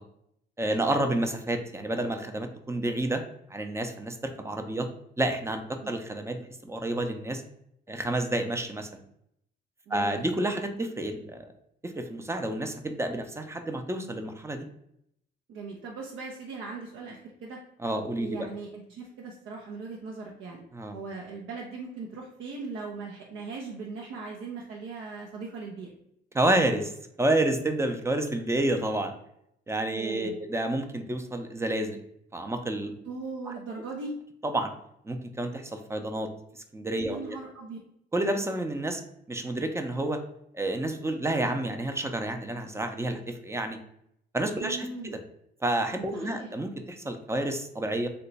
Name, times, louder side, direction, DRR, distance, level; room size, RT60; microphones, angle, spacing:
voice 1, 0.6-3.2 3.5-4.9 5.2-7.4 7.9-8.9 9.9-11.4 11.8-14.7 17.8-18.5 20.7-21.0 26.3-26.9 27.2-29.1 29.7-32.0 32.3-32.9 33.5-33.6 34.4-34.7 35.0-37.4 38.1-39.0 39.3-40.2 40.5-43.8 44.3-45.2 45.6-48.1, right 1 dB, 15° right, 6 dB, 0.4 m, -29 dB
voice 2, 9.9-10.2 15.5-17.6 18.2-20.6 20.9-25.9 30.0-30.3 33.0-34.1 37.1-37.8 44.6-45.1 46.1-46.5, right 4 dB, 85° right, -2 dB, 0.6 m, -39 dB
2.9 x 2.2 x 3.9 m, 0.74 s
cardioid pair, 90°, 20 cm